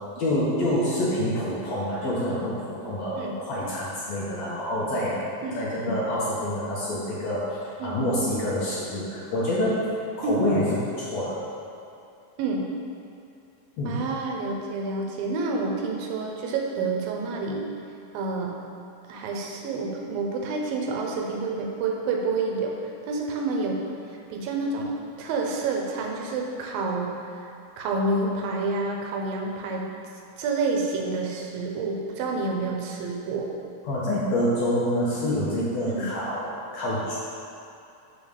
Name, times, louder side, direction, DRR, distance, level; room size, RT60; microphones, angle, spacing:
voice 1, 0.2-5.2 5.5-9.8 10.2-11.4 13.8-14.0 33.8-37.1, left 1 dB, 65° left, -7 dB, 1.8 m, -27 dB
voice 2, 5.4-5.9 7.8-8.0 10.2-10.4 12.4-12.7 13.9-17.7 18.1-18.5 19.1-22.7 23.1-23.8 24.3-27.1 27.8-29.9 30.4-33.5 35.9-36.0, right 3 dB, 80° right, 0 dB, 2.6 m, -28 dB
7.1 x 4.0 x 6.5 m, 2.7 s
omnidirectional pair, 4.1 m